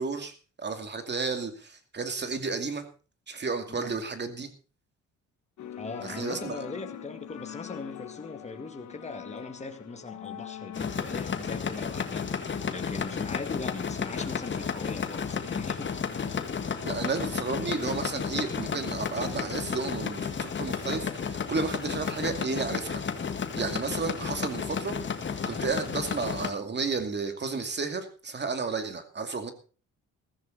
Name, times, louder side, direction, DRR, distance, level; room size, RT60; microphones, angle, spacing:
voice 1, 0.0-2.8 3.3-4.5 6.0-6.6 16.8-23.0 23.5-25.0 25.5-29.5, right 4 dB, 35° right, 7 dB, 2.5 m, -32 dB
sound 1, 5.6-10.8, left 10 dB, 70° left, 1.3 m, -43 dB
voice 2, 5.6-15.9, left 3 dB, 20° left, 6 dB, 2.1 m, -40 dB
sound 2, 10.7-26.5, left 6 dB, 40° left, 1.7 m, -32 dB
15.0 x 14.0 x 4.1 m, 0.39 s
cardioid pair, 90°, 30 cm